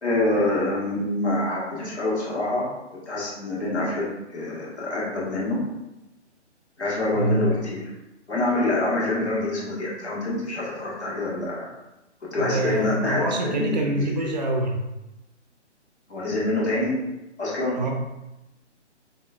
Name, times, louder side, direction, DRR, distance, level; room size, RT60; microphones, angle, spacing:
voice 1, 0.0-2.7 3.1-5.6 6.8-7.8 8.3-11.7 12.3-14.3 16.1-17.0 17.4-17.8, left 2 dB, 70° left, -5 dB, 1.4 m, -26 dB
voice 2, 12.4-14.8 17.7-17.9, right 2 dB, 40° right, 1 dB, 0.4 m, -26 dB
5.0 x 2.2 x 2.4 m, 0.96 s
figure-of-eight pair, 140°, 35 cm